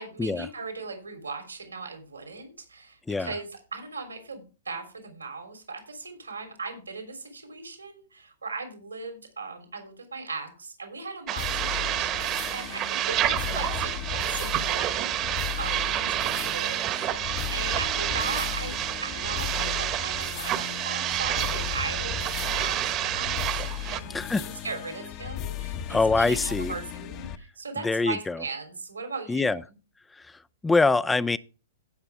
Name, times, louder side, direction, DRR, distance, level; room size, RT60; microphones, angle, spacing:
voice 1, 0.0-18.7 19.0-29.6, right 4 dB, 90° right, 3.5 m, -38 dB
sound 1, 11.3-24.0, right 13 dB, 35° right, 1.2 m, -29 dB
sound 2, 11.4-27.4, left 10 dB, 40° left, 1.0 m, -36 dB
voice 2, 24.1-24.4 25.9-26.7 27.8-28.4 29.3-29.6 30.6-31.4, left 3 dB, 10° left, 0.4 m, -24 dB
17.0 x 5.8 x 3.5 m
hypercardioid pair, 115°, 0 cm